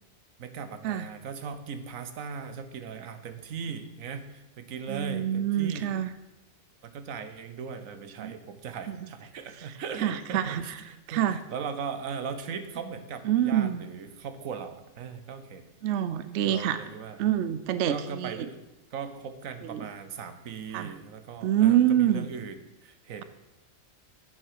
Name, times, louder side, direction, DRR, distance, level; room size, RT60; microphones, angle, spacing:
voice 1, 0.4-5.9 6.8-15.6 16.4-17.2 17.9-18.6 18.9-22.6 22.8-23.2, right 6 dB, 85° right, 9 dB, 1.3 m, -38 dB
voice 2, 4.9-6.1 8.2-8.3 8.9-9.1 9.6-10.8 11.1-11.4 13.2-13.8 15.8-16.8 17.2-18.5 19.6-19.9 20.7-20.9 21.4-22.3, right 11 dB, 65° right, 12 dB, 0.9 m, -26 dB
7.8 x 7.6 x 6.6 m, 1.0 s
omnidirectional pair, 1.4 m